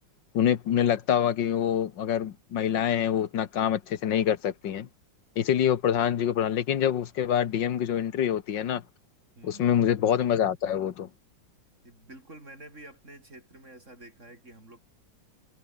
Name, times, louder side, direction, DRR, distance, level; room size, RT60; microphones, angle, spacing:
voice 1, 0.3-4.9 5.4-8.8 9.4-11.1, left 9 dB, 80° left, 1.9 m, -25 dB
voice 2, 9.4-9.8 11.8-14.8, right 1 dB, 40° right, 7.7 m, -49 dB
omnidirectional pair, 2.0 m